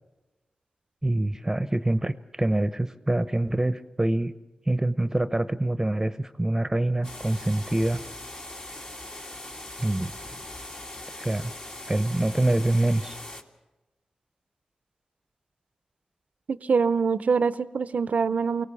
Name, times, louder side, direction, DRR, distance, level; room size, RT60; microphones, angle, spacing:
voice 1, 1.0-4.3 4.7-8.0 9.8-10.1 11.2-11.5 11.9-13.2, right 1 dB, 20° right, 12 dB, 0.8 m, -25 dB
sound 1, 7.0-13.4, left 1 dB, 40° left, 2.3 m, -40 dB
voice 2, 16.5-18.7, right 5 dB, 70° right, 15 dB, 0.6 m, -24 dB
23.5 x 17.5 x 7.1 m, 1.1 s
cardioid pair, 40°, 3 cm